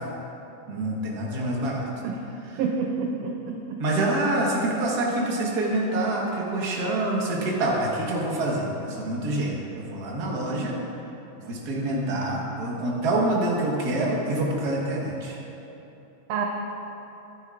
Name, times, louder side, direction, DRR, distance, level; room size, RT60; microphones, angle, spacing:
voice 1, 0.7-1.8 2.5-2.6 3.8-10.7 11.4-15.4, right 1 dB, 45° right, -3 dB, 1.5 m, -26 dB
voice 2, 2.5-3.8 16.3-16.5, right 5 dB, 75° right, 1 dB, 1.5 m, -28 dB
15.0 x 11.0 x 2.5 m, 3.0 s
omnidirectional pair, 3.5 m